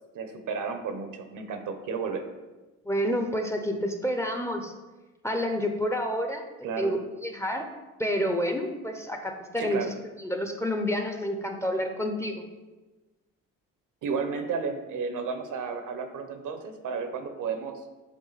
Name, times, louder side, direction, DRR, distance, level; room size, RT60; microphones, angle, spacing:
voice 1, 0.1-2.2 6.6-6.9 9.6-9.9 14.0-17.8, right 5 dB, 65° right, 7 dB, 0.9 m, -32 dB
voice 2, 2.9-4.7 5.2-6.4 6.8-7.7 8.0-9.9 10.2-12.4, equal, 10° left, 4 dB, 0.6 m, -29 dB
7.3 x 3.7 x 4.0 m, 1.2 s
cardioid pair, 105°, 33 cm